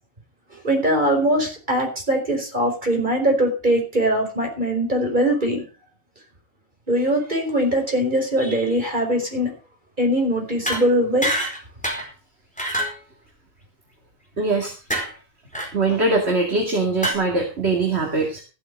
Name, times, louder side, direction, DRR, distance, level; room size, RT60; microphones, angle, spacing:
voice 1, 0.6-5.6 6.9-9.5 10.0-11.3, right 1 dB, 35° right, 2 dB, 5.0 m, -21 dB
More fighting with shovels, 10.6-10.8 11.2-11.6 11.8-12.1 12.6-13.0 14.9-15.1 15.5-15.7 17.0-17.1, right 1 dB, 5° left, 4.5 m, -25 dB
voice 2, 14.4-14.7 15.7-18.4, right 3 dB, 55° right, 1 dB, 2.6 m, -22 dB
14.5 x 8.9 x 5.4 m, 0.34 s
omnidirectional pair, 1.4 m